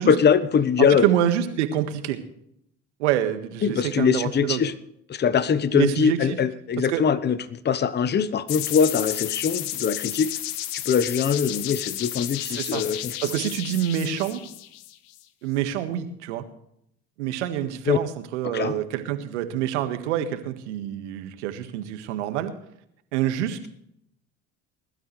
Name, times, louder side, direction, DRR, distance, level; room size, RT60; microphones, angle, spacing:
voice 1, 0.1-1.1 3.6-4.7 5.1-10.3 10.7-13.2 17.9-18.0 18.5-18.8, left 7 dB, 30° left, 15 dB, 1.0 m, -22 dB
voice 2, 1.0-2.2 3.0-4.6 5.7-6.4 6.8-7.0 12.5-12.8 13.2-14.4 15.4-16.4 17.2-22.5 23.1-23.7, right 11 dB, 80° right, 9 dB, 1.7 m, -26 dB
sound 1, 8.5-15.2, left 14 dB, 65° left, 1.3 m, -32 dB
21.0 x 12.0 x 3.3 m, 0.73 s
hypercardioid pair, 75°, 35 cm